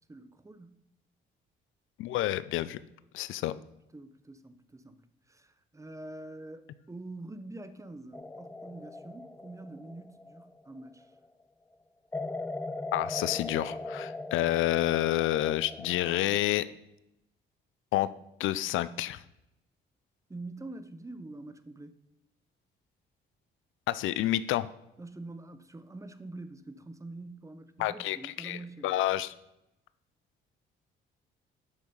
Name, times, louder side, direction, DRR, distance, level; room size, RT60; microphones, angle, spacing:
voice 1, 0.1-0.8 3.9-11.1 20.3-21.9 25.0-29.0, right 2 dB, 15° right, 0.8 m, -45 dB
voice 2, 2.0-2.8 3.1-3.5 12.9-16.7 17.9-18.1 18.4-19.2 23.9-24.7 27.8-28.6 28.8-29.3, left 14 dB, 85° left, 0.5 m, -29 dB
sound 1, 8.1-11.1 12.1-16.4, left 2 dB, 10° left, 0.4 m, -40 dB
8.4 x 6.5 x 5.4 m
cardioid pair, 90°, 20 cm